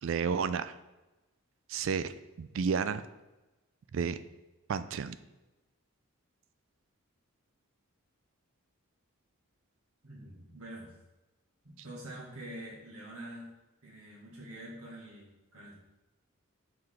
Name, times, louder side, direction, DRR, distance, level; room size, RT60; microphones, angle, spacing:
voice 1, 0.0-0.7 1.7-3.0 3.9-4.2 4.7-5.2, right 6 dB, 60° right, 12 dB, 0.3 m, -31 dB
voice 2, 10.0-10.9 11.6-13.5 13.8-15.7, right 1 dB, 85° right, -5 dB, 2.0 m, -46 dB
6.4 x 4.5 x 3.8 m, 1.1 s
head